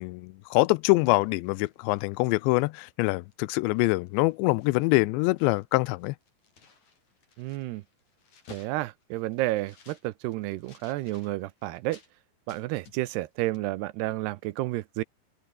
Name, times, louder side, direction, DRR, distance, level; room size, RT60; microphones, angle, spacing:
voice 1, 0.0-6.2, left 23 dB, 90° left, 2.9 m, -24 dB
sound 1, 0.8-2.9 3.3-3.5 3.8-5.0 5.3-12.1 12.5-13.3 13.5-13.7, left 5 dB, 40° left, 5.6 m, -56 dB
voice 2, 7.4-7.8 8.5-12.0 12.5-15.0, right 17 dB, 80° right, 2.7 m, -31 dB
omnidirectional pair, 5.0 m